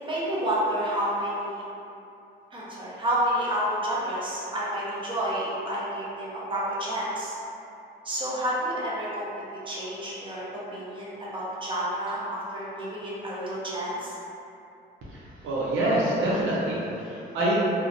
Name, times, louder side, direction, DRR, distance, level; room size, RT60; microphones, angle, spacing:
voice 1, 0.0-1.6 2.5-7.3 8.0-9.2 9.7-14.2, right 1 dB, 25° right, -8 dB, 0.7 m, -30 dB
voice 2, 15.1-17.6, right 1 dB, 80° right, -7 dB, 0.6 m, -26 dB
2.4 x 2.1 x 2.5 m, 2.8 s
cardioid pair, 90°, 20 cm